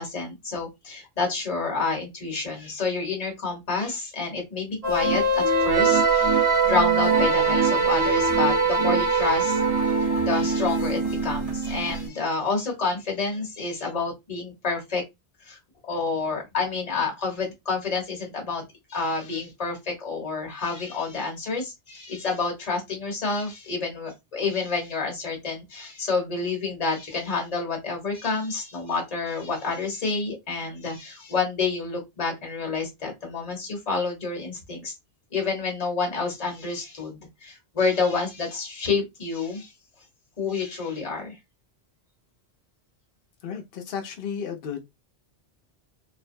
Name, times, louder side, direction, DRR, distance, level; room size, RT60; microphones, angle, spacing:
voice 1, 0.0-9.6 10.0-15.0 15.5-15.6 15.8-18.6 18.9-34.9 35.3-39.7 40.4-41.4, left 4 dB, 35° left, 1.0 m, -29 dB
sound 1, 4.8-12.1, right 4 dB, 35° right, 0.9 m, -22 dB
voice 2, 43.4-44.8, left 7 dB, 60° left, 0.6 m, -33 dB
2.5 x 2.1 x 2.5 m
omnidirectional pair, 1.2 m